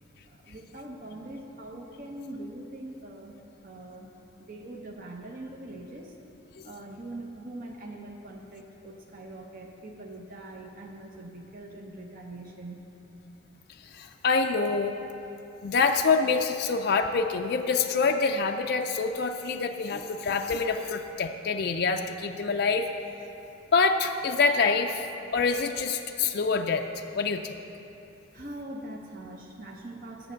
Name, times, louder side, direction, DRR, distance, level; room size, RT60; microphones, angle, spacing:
voice 1, 0.2-3.3 3.6-4.1 4.4-6.1 6.6-12.8 28.3-30.3, right 1 dB, 45° right, 0 dB, 0.7 m, -42 dB
voice 2, 13.8-14.9 15.6-22.9 23.7-27.6, left 4 dB, 55° left, 5 dB, 0.4 m, -26 dB
8.9 x 7.2 x 6.4 m, 3.0 s
head